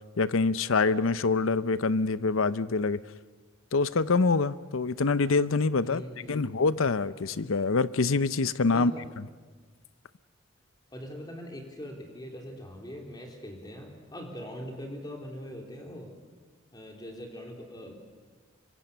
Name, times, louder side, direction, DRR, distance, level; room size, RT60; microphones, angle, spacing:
voice 1, 0.2-3.0 3.7-6.0 6.3-8.9, left 4 dB, 85° left, 16 dB, 0.7 m, -25 dB
voice 2, 5.8-6.7 8.7-9.0 10.9-16.1 16.7-18.0, equal, 20° left, 1 dB, 3.7 m, -42 dB
25.0 x 24.5 x 6.9 m, 1.4 s
head